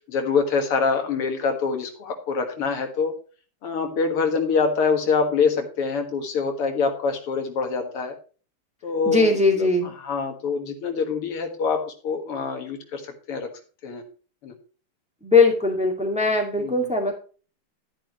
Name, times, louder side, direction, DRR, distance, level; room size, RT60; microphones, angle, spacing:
voice 1, 0.1-3.1 3.6-8.1 8.8-9.7 10.0-13.0 13.3-13.5 13.8-14.0 14.4-14.5 16.6-16.9, left 5 dB, 85° left, 5 dB, 2.6 m, -25 dB
voice 2, 9.1-9.9 15.2-17.1, left 3 dB, 5° right, 1 dB, 1.9 m, -20 dB
11.5 x 10.0 x 3.0 m, 0.38 s
omnidirectional pair, 2.4 m